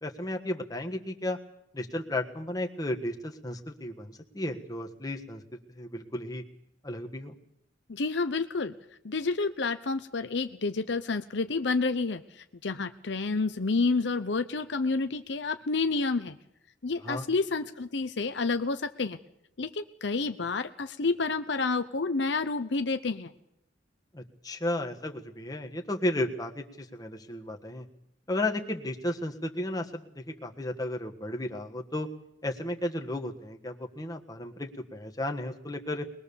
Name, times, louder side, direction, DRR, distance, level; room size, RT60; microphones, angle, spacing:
voice 1, 0.0-1.4 1.7-5.4 5.7-6.4 6.8-7.3 17.0-17.3 24.1-27.9 28.3-32.1 32.4-36.1, left 1 dB, 20° left, 3 dB, 1.5 m, -34 dB
voice 2, 7.9-8.7 9.0-16.4 16.8-19.2 19.6-23.3, left 3 dB, 65° left, 9 dB, 0.7 m, -29 dB
22.5 x 20.5 x 7.0 m, 0.80 s
head